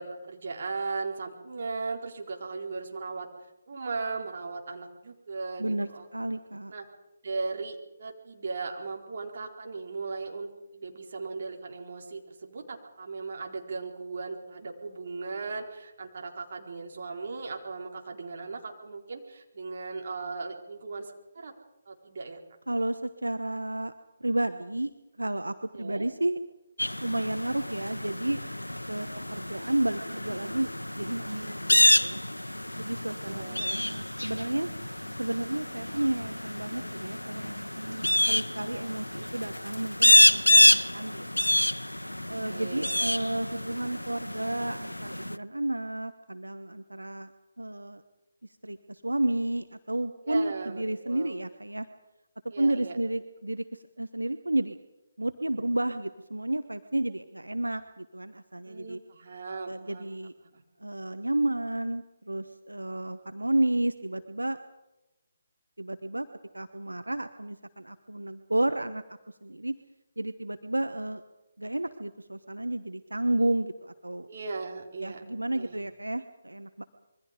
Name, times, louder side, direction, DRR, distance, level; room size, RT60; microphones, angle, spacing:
voice 1, 0.0-3.3 3.7-6.1 6.7-6.8 7.2-21.5 21.9-22.4 25.7-26.1 33.2-33.6 42.5-42.9 50.2-51.3 52.5-53.0 58.7-60.1 60.4-60.6 74.3-75.2 75.5-75.9, right 4 dB, 50° right, 2 dB, 4.1 m, -37 dB
voice 2, 5.6-6.7 22.7-23.9 24.2-24.9 25.2-26.4 27.0-28.4 28.9-32.2 32.8-34.7 35.2-41.5 42.3-47.3 47.6-48.0 48.6-51.9 52.6-54.8 55.2-59.0 59.6-60.3 60.8-64.6 65.8-66.3 66.5-69.0 69.4-69.8 70.2-71.2 71.6-74.3 75.0-76.8, right 1 dB, 85° right, 9 dB, 1.1 m, -31 dB
sound 1, 26.8-45.4, left 1 dB, 90° left, 0.8 m, -27 dB
26.0 x 23.0 x 5.2 m, 0.99 s
figure-of-eight pair, 145°, 0 cm